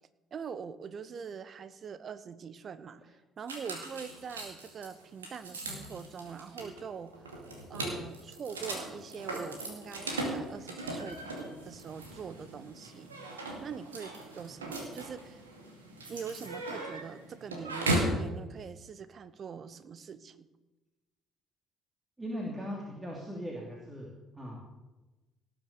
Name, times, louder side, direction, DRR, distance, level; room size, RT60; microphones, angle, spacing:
voice 1, 0.3-7.2 7.7-11.2 11.6-13.1 13.6-15.4 16.1-20.5, right 6 dB, 45° right, 14 dB, 1.0 m, -43 dB
sound 1, 3.5-18.2, right 1 dB, 80° right, 2.2 m, -37 dB
voice 2, 22.2-24.6, equal, 15° right, -2 dB, 2.9 m, -39 dB
18.0 x 7.1 x 6.7 m, 1.1 s
figure-of-eight pair, 50°, 0 cm